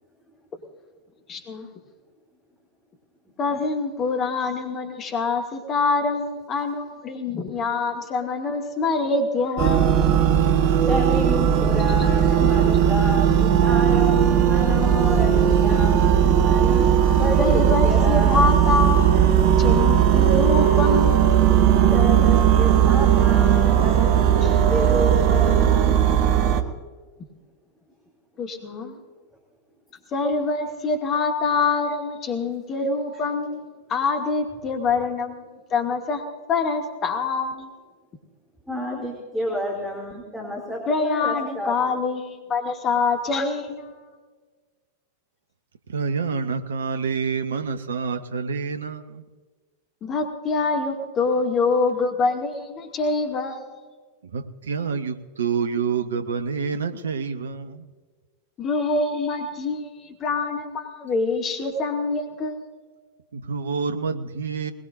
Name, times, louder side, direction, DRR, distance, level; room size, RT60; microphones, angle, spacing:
voice 1, 1.3-1.7 3.4-10.1 17.4-21.3 28.4-28.9 30.1-36.2 36.5-37.7 40.9-44.0 50.0-53.7 58.6-62.6, left 4 dB, 30° left, 2.4 m, -25 dB
sound 1, 9.6-26.6, right 9 dB, 45° right, 1.2 m, -18 dB
voice 2, 10.8-16.9 17.1-18.4 21.9-25.9 38.7-41.7, equal, ahead, 3.1 m, -30 dB
voice 3, 45.9-49.2 54.3-57.8 63.3-64.7, right 5 dB, 65° right, 1.0 m, -27 dB
21.0 x 20.5 x 2.6 m
figure-of-eight pair, 90°, 0 cm